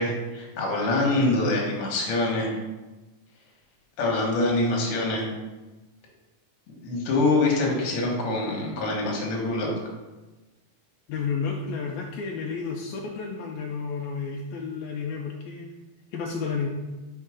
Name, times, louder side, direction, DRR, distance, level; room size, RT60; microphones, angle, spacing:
voice 1, 0.0-2.6 4.0-5.3 6.8-9.7, left 2 dB, 55° left, -1 dB, 1.6 m, -25 dB
voice 2, 11.1-15.7 16.1-16.7, left 5 dB, 85° left, 0 dB, 1.6 m, -31 dB
4.5 x 4.4 x 4.9 m, 1.1 s
omnidirectional pair, 3.7 m